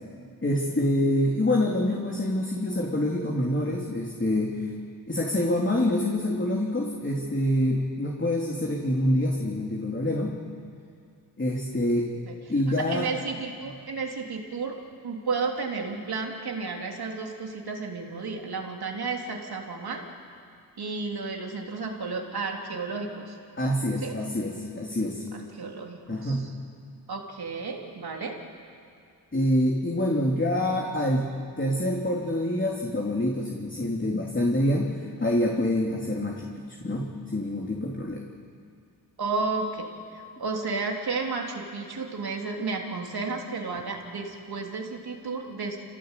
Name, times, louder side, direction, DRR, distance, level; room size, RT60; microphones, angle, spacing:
voice 1, 0.4-4.7 5.1-10.4 11.4-12.1 12.5-13.1 23.6-25.2 26.1-26.5 29.3-38.2, left 1 dB, 30° left, -1 dB, 3.4 m, -26 dB
voice 2, 12.9-14.8 15.0-20.0 20.8-23.4 24.0-24.1 25.3-26.5 27.1-28.4 39.2-45.8, right 4 dB, 75° right, 1 dB, 3.5 m, -32 dB
28.0 x 18.0 x 8.4 m, 2.4 s
cardioid pair, 55°, 38 cm